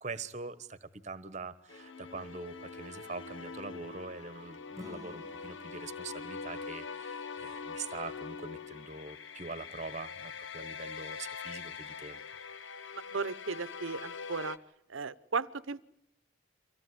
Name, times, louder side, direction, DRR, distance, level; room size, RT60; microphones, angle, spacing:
voice 1, 0.0-12.2, right 4 dB, 35° right, 14 dB, 1.3 m, -43 dB
sound 1, 1.7-14.6, left 5 dB, 70° left, 0.9 m, -43 dB
Acoustic guitar / Strum, 4.7-8.0, equal, 15° right, 1.1 m, -53 dB
voice 2, 13.1-14.6 14.9-15.8, right 4 dB, 80° right, 17 dB, 0.9 m, -35 dB
25.0 x 17.0 x 9.8 m, 0.74 s
head